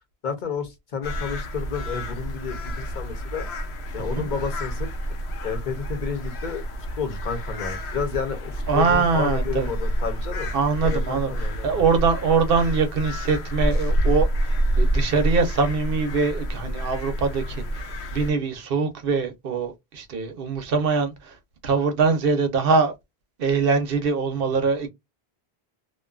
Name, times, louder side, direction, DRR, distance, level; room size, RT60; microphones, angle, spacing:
voice 1, 0.2-3.5 3.9-4.9 5.4-6.7 7.0-10.5 10.8-11.8, left 6 dB, 50° left, 0.8 m, -31 dB
sound 1, 1.0-18.3, right 1 dB, 80° left, 0.9 m, -28 dB
voice 2, 8.7-9.7 10.5-11.3 11.6-14.3 14.8-17.6 18.1-21.3 21.6-22.9 23.4-24.9, right 4 dB, 65° right, 0.8 m, -23 dB
2.5 x 2.2 x 2.3 m
omnidirectional pair, 1.1 m